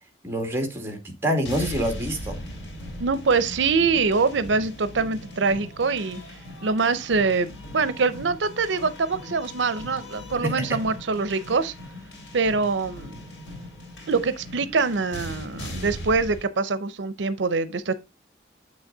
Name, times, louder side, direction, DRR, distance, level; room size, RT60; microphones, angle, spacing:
voice 1, 0.2-2.4 10.4-10.8, equal, 15° right, 2.1 m, -27 dB
sound 1, 1.4-16.4, left 1 dB, 90° left, 3.6 m, -39 dB
voice 2, 3.0-6.2 6.6-11.7 12.3-13.2 14.1-17.9, right 4 dB, 80° right, 0.6 m, -24 dB
7.7 x 6.3 x 3.8 m
head